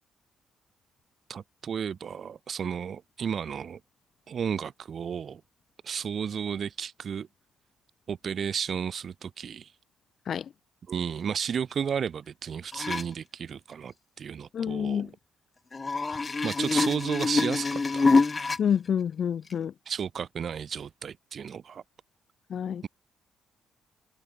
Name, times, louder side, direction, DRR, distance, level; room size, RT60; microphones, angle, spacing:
voice 1, 1.3-3.8 4.3-5.4 5.8-7.3 8.1-9.7 10.9-15.1 16.1-18.1 19.8-21.8, right 7 dB, 45° right, 3.2 m, -33 dB
sound 1, 12.7-13.0 15.7-18.6 19.5-19.6, left 4 dB, 25° left, 1.0 m, -25 dB
voice 2, 14.5-15.1 18.6-19.7 22.5-22.8, left 8 dB, 50° left, 2.7 m, -28 dB
cardioid pair, 130°, 0 cm